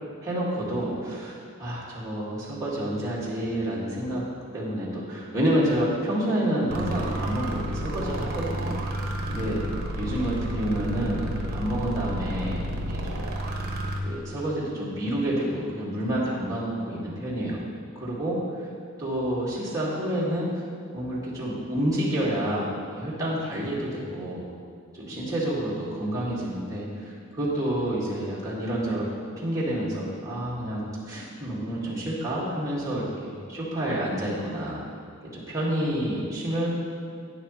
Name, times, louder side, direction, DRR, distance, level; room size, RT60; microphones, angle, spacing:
voice 1, 0.2-4.2 4.5-8.8 9.3-9.6 10.0-13.2 13.5-13.6 14.0-17.6 18.0-18.4 19.0-20.6 20.9-24.4 24.9-29.1 29.3-34.8 35.3-36.7, right 1 dB, 15° right, -8 dB, 2.2 m, -29 dB
sound 1, 6.7-14.0, equal, 50° right, 1.2 m, -31 dB
12.0 x 9.6 x 3.3 m, 2.2 s
head